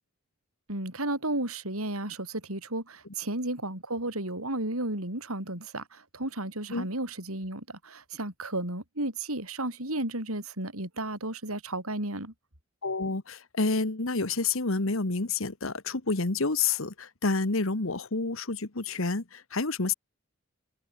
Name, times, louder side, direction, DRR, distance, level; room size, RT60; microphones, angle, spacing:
voice 1, 0.7-12.3, right 1 dB, 80° right, 8.0 m, -33 dB
voice 2, 12.8-19.9, left 3 dB, 70° left, 1.5 m, -29 dB
head